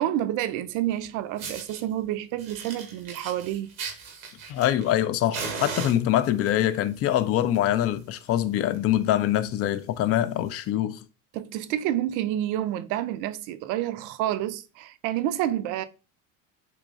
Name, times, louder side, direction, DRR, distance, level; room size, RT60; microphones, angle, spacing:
voice 1, 0.0-3.7 11.3-15.8, right 12 dB, 50° right, 0.5 m, -29 dB
Fire, 0.9-1.0 1.4-1.8 2.4-5.0 5.3-6.5 7.3-7.6 7.9-8.0 8.4-8.5 8.7-9.0 9.5-9.6 10.5-10.6, right 5 dB, 85° right, 1.0 m, -37 dB
voice 2, 4.5-11.0, left 12 dB, 40° left, 0.4 m, -24 dB
3.8 x 3.0 x 2.4 m
hypercardioid pair, 80°, 40 cm